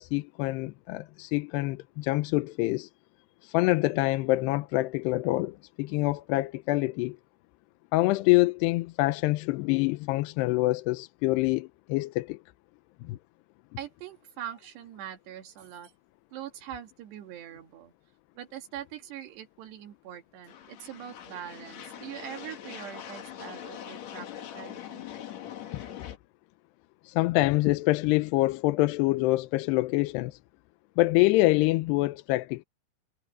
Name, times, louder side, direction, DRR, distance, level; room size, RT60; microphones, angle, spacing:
voice 1, 0.0-2.9 3.4-7.2 7.9-12.4 13.0-13.2 27.1-30.4 31.0-32.6, left 19 dB, 90° left, 2.8 m, -26 dB
voice 2, 13.8-15.9 16.3-17.9 18.4-24.3 24.5-25.1, right 10 dB, 80° right, 4.3 m, -42 dB
sound 1, 20.5-26.2, left 10 dB, 55° left, 2.1 m, -42 dB
omnidirectional pair, 4.8 m